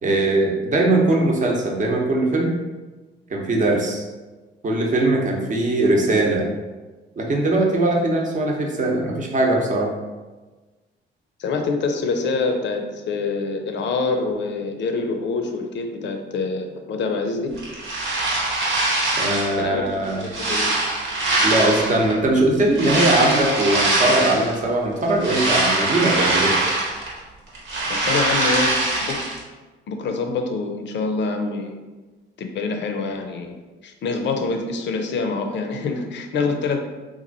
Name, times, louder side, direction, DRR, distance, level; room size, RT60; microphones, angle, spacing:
voice 1, 0.0-2.6 3.3-4.0 4.6-6.4 7.2-9.9 19.2-20.2 21.4-26.6, right 2 dB, 40° right, 0 dB, 0.8 m, -20 dB
voice 2, 11.4-17.5 19.6-20.8 27.9-29.3 29.9-31.8 32.4-33.6 33.8-36.8, left 4 dB, 65° left, 5 dB, 0.5 m, -26 dB
sound 1, 17.6-19.6 20.0-22.1 22.7-24.5 25.0-27.2 27.5-29.4, right 2 dB, 75° right, 1.1 m, -22 dB
2.9 x 2.5 x 3.9 m, 1.2 s
cardioid pair, 90°, 20 cm